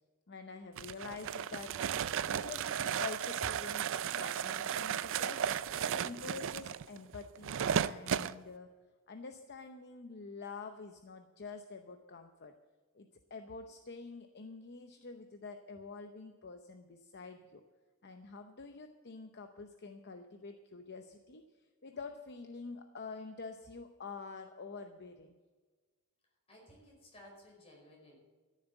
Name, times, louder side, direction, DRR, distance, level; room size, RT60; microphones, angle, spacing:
voice 1, 0.3-1.8 2.2-5.4 5.8-8.7 9.1-12.5 12.9-17.6 18.0-25.4, left 4 dB, 50° left, 6 dB, 0.8 m, -47 dB
sound 1, 0.8-8.3, right 8 dB, 60° right, 0.4 m, -35 dB
voice 2, 26.2-28.2, left 1 dB, 25° left, -2 dB, 5.1 m, -57 dB
13.5 x 7.4 x 8.0 m, 1.3 s
head